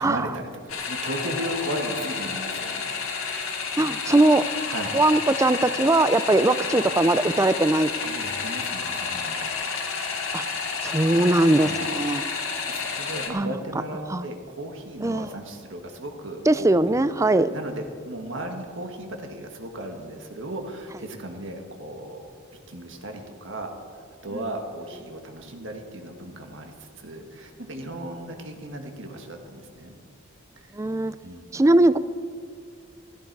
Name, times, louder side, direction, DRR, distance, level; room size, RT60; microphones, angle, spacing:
voice 1, 0.0-2.9 4.7-4.9 8.0-9.5 11.6-12.0 12.4-17.0 17.4-22.2 22.7-30.0 30.6-30.8 31.2-31.5, right 1 dB, 60° right, 4 dB, 1.6 m, -36 dB
sound 1, 0.7-13.3, left 5 dB, 80° left, 2.0 m, -30 dB
voice 2, 3.8-4.4 4.9-7.9 10.3-10.4 10.8-12.2 13.3-13.5 14.1-14.3 15.0-15.3 16.5-17.5 24.3-24.4 30.7-31.1 31.5-32.0, right 2 dB, 15° right, 14 dB, 0.4 m, -20 dB
15.5 x 14.0 x 4.7 m, 2.1 s
head